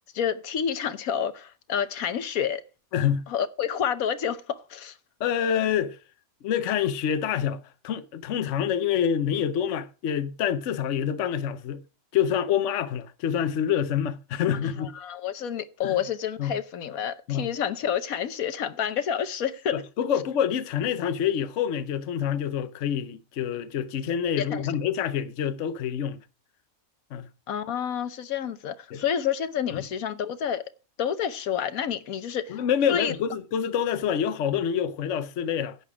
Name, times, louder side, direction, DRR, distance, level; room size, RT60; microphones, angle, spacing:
voice 1, 0.1-2.6 3.3-4.4 4.7-4.9 14.8-19.8 24.4-24.6 27.5-30.6 31.0-32.6 32.9-33.1, left 8 dB, 80° left, 1.3 m, -29 dB
voice 2, 2.9-3.3 5.2-6.0 6.4-11.8 12.1-14.9 15.8-16.0 16.4-16.6 17.3-17.5 19.7-26.2 27.1-27.3 28.9-29.0 29.7-29.8 32.5-35.8, left 8 dB, 60° left, 1.0 m, -27 dB
11.0 x 7.9 x 4.9 m
omnidirectional pair, 1.5 m